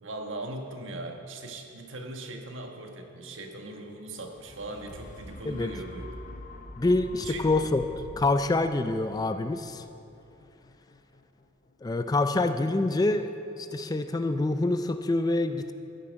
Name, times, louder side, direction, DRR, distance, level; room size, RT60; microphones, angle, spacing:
voice 1, 0.0-6.1 7.2-7.6, right 2 dB, 75° right, 3 dB, 1.3 m, -39 dB
sound 1, 4.1-12.1 12.7-12.8, left 1 dB, 40° left, 0.8 m, -46 dB
voice 2, 6.8-7.8 8.2-9.8 11.8-13.3 13.6-15.7, left 2 dB, 20° left, 9 dB, 0.3 m, -26 dB
14.5 x 8.1 x 5.2 m, 2.8 s
head